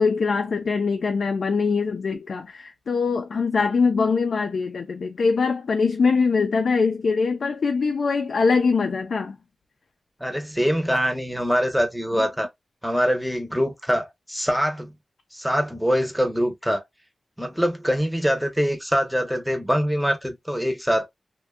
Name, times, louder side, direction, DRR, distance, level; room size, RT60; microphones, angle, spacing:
voice 1, 0.0-9.4 12.2-12.3, left 4 dB, 80° left, 0.3 m, -22 dB
voice 2, 10.2-12.5 12.8-14.9 15.3-16.8 17.4-21.1, equal, ahead, 0.6 m, -24 dB
2.6 x 2.1 x 2.3 m
wide cardioid pair, 65°, 0 cm